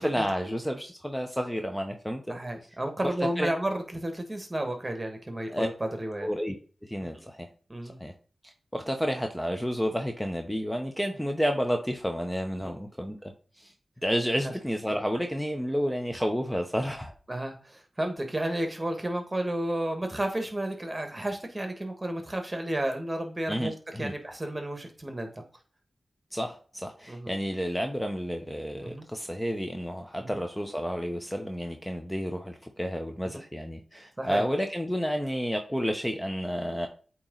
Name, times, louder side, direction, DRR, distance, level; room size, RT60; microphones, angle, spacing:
voice 1, 0.0-2.4 3.0-3.1 3.4-3.5 5.5-5.7 6.2-6.5 6.9-7.5 8.0-8.1 8.7-13.7 14.0-17.1 23.5-24.1 26.3-36.9, equal, 5° left, 4 dB, 0.8 m, -30 dB
voice 2, 2.3-6.3 7.7-8.0 12.6-12.7 14.4-14.5 17.3-25.4 27.1-27.3 28.8-29.0 30.2-30.4 33.3-33.4 34.2-34.4, right 1 dB, 25° right, 5 dB, 1.6 m, -32 dB
8.3 x 3.0 x 3.9 m, 0.39 s
cardioid pair, 40°, 0 cm